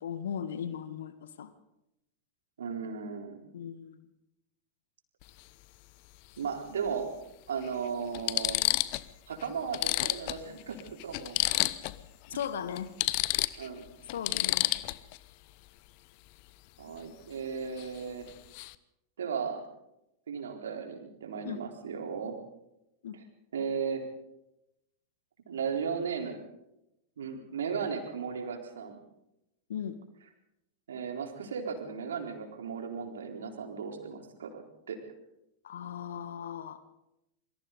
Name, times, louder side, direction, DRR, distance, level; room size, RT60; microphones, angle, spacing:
voice 1, 0.0-1.5 3.5-4.0 12.3-12.9 14.1-14.6 21.4-21.6 23.0-23.2 29.7-30.0 35.6-36.8, left 8 dB, 60° left, 12 dB, 1.5 m, -37 dB
voice 2, 2.6-3.4 6.4-7.1 7.5-8.6 9.3-11.5 13.6-13.9 16.8-18.3 19.2-19.6 20.3-22.4 23.1-23.2 23.5-24.0 25.5-26.4 27.2-29.0 30.9-34.6 34.9-35.0, right 6 dB, 65° right, 3 dB, 3.9 m, -36 dB
sound 1, 5.2-5.4 6.9-7.0 7.6-7.7 8.1-9.1 9.4-9.5 9.7-12.0 12.3-12.5 12.8-15.2 17.8-18.0 18.3-18.7, left 20 dB, 45° left, 0.9 m, -30 dB
27.0 x 25.0 x 4.0 m, 0.87 s
figure-of-eight pair, 90°, 0 cm